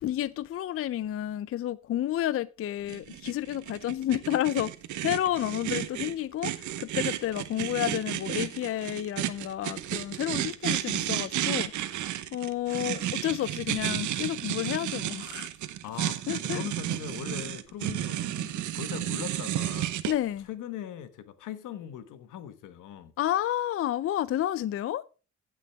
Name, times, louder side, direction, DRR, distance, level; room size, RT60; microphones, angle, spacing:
voice 1, 0.0-4.7 5.0-11.7 12.3-15.5 16.3-16.6 20.1-20.5 23.2-25.0, left 12 dB, 50° left, 0.4 m, -30 dB
sound 1, 2.9-20.1, right 12 dB, 75° right, 1.0 m, -32 dB
voice 2, 5.3-5.7 15.8-20.0 20.4-23.1, left 10 dB, 85° left, 1.3 m, -40 dB
15.5 x 6.2 x 3.4 m
cardioid pair, 90°, 30 cm